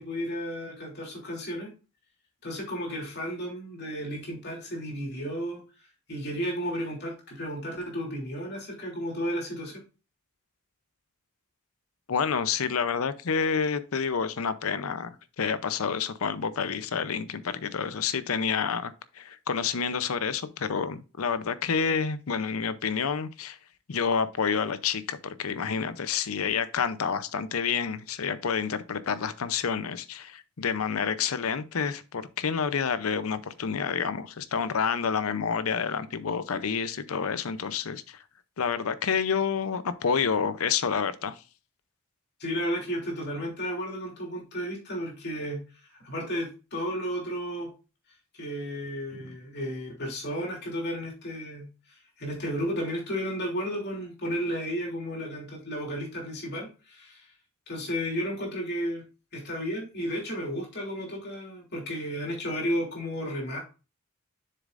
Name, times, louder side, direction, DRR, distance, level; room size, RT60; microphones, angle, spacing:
voice 1, 0.0-1.7 2.4-5.6 6.1-9.8 42.4-45.6 46.0-47.7 48.3-51.7 52.2-57.3 57.7-59.0 59.3-63.6, equal, 50° left, 2.9 m, -33 dB
voice 2, 12.1-23.6 23.9-38.2 38.6-41.3, left 6 dB, 85° left, 0.6 m, -29 dB
7.4 x 6.7 x 2.5 m
head